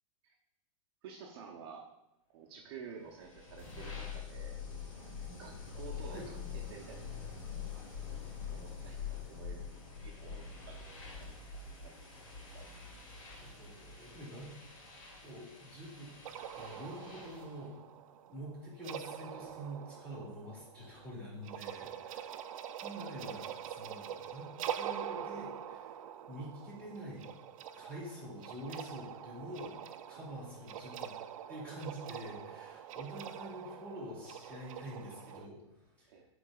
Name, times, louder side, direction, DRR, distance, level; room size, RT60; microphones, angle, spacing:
voice 1, 1.0-1.9 2.3-4.6 4.9-5.1 5.4-7.3 7.7-7.8 8.5-9.7 10.0-12.0 12.5-12.7 22.3-22.4 36.1-36.3, right 6 dB, 45° right, 0 dB, 0.7 m, -51 dB
sound 1, 3.0-17.6, left 6 dB, 70° left, 2.2 m, -45 dB
voice 2, 13.4-14.5 15.2-16.1 16.5-17.7 18.3-22.4 22.8-24.5 24.8-25.9 26.3-27.3 27.7-29.8 30.1-31.1 31.5-36.1, equal, 10° left, -6 dB, 2.1 m, -46 dB
sound 2, 16.3-35.5, right 9 dB, 85° right, 0.5 m, -45 dB
11.0 x 3.9 x 2.3 m, 0.91 s
supercardioid pair, 170°, 17 cm